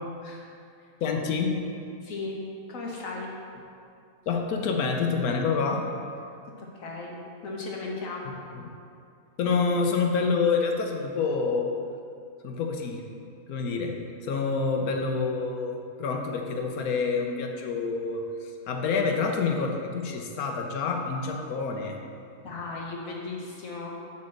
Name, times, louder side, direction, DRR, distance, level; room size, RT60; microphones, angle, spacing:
voice 1, 1.0-1.6 4.3-5.8 8.5-8.6 9.4-11.7 12.4-13.0 13.5-13.9 14.2-22.0, left 4 dB, 85° left, 3 dB, 1.3 m, -27 dB
voice 2, 2.0-2.4 2.7-3.3 6.6-7.2 7.4-8.3 22.4-23.9, left 3 dB, 65° left, -2 dB, 1.6 m, -36 dB
8.4 x 4.3 x 6.4 m, 2.4 s
omnidirectional pair, 1.5 m